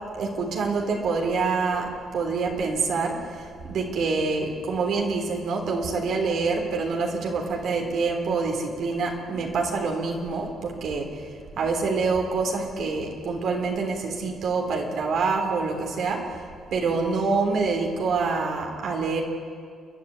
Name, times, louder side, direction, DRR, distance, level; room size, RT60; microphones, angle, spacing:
voice 1, 0.1-3.1 3.6-11.1 11.6-16.2 16.7-19.2, right 4 dB, 70° right, 1 dB, 3.5 m, -26 dB
29.5 x 11.0 x 9.8 m, 2.1 s
cardioid pair, 90°, 0 cm